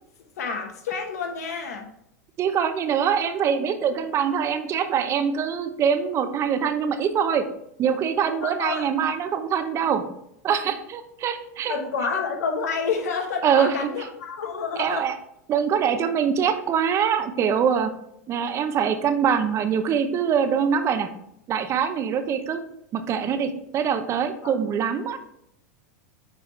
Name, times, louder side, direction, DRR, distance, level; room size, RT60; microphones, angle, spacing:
voice 1, 0.4-1.9 8.4-8.9 11.7-15.1 24.4-24.5, left 5 dB, 80° left, 3 dB, 1.2 m, -29 dB
voice 2, 2.4-7.5 7.8-10.0 10.4-11.8 13.4-13.9 14.8-15.1 15.5-17.9 18.3-21.1 21.5-22.6 22.9-25.2, right 7 dB, 35° right, 9 dB, 0.7 m, -23 dB
8.8 x 3.5 x 3.2 m, 0.77 s
hypercardioid pair, 105°, 8 cm